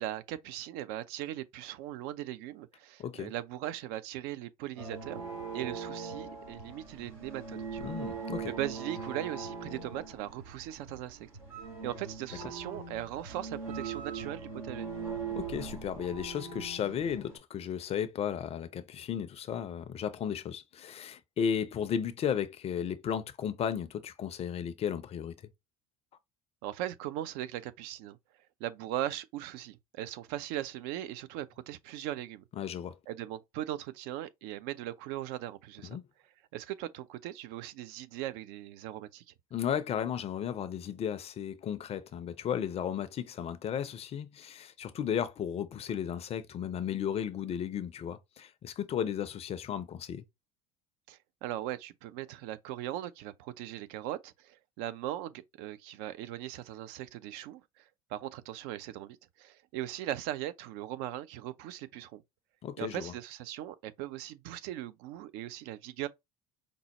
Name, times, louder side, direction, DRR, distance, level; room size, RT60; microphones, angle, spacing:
voice 1, 0.0-5.3 5.5-7.9 8.5-11.3 11.8-14.9 26.6-28.2 28.6-32.4 33.1-36.0 36.5-39.3 51.1-57.8 58.1-62.2 62.8-66.1, right 13 dB, 60° right, 0.5 m, -39 dB
voice 2, 3.0-3.3 7.8-8.5 15.3-25.3 32.6-33.0 35.8-36.0 39.5-50.2 62.6-63.1, left 8 dB, 35° left, 0.5 m, -34 dB
sound 1, 4.8-17.4, right 5 dB, 85° right, 2.4 m, -41 dB
5.2 x 2.0 x 2.9 m
figure-of-eight pair, 65°, 18 cm